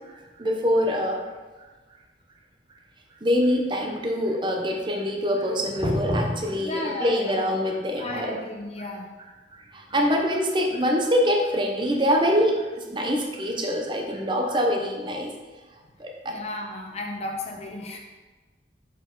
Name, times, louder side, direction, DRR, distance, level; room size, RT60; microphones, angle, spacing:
voice 1, 0.4-1.2 3.2-8.4 9.2-15.3 16.0-16.3, equal, 25° right, 1 dB, 0.8 m, -24 dB
voice 2, 6.6-7.4 8.0-9.1 16.2-18.0, left 2 dB, 35° left, 1 dB, 1.0 m, -33 dB
6.6 x 5.2 x 3.9 m, 1.3 s
head